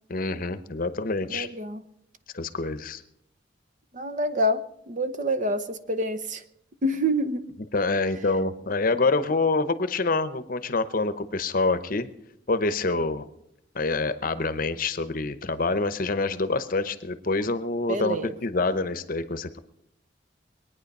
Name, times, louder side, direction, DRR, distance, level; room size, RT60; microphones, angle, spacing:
voice 1, 0.1-1.5 2.3-3.0 7.7-12.1 12.5-13.3 13.7-19.6, left 3 dB, 50° left, 12 dB, 0.8 m, -26 dB
voice 2, 1.3-1.8 3.9-6.4 6.8-7.4 17.9-18.3, equal, 40° right, 9 dB, 0.8 m, -27 dB
22.5 x 9.5 x 5.4 m, 0.76 s
head